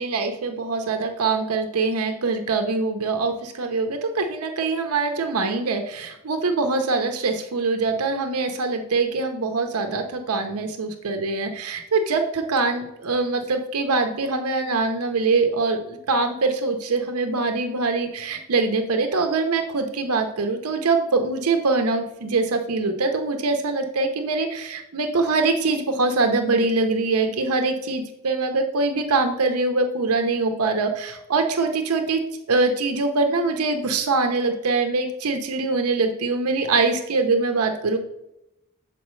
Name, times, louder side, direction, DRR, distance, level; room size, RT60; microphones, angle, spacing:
voice 1, 0.0-32.2 32.5-38.0, right 3 dB, 90° right, 6 dB, 0.7 m, -23 dB
7.2 x 4.5 x 3.1 m, 0.86 s
head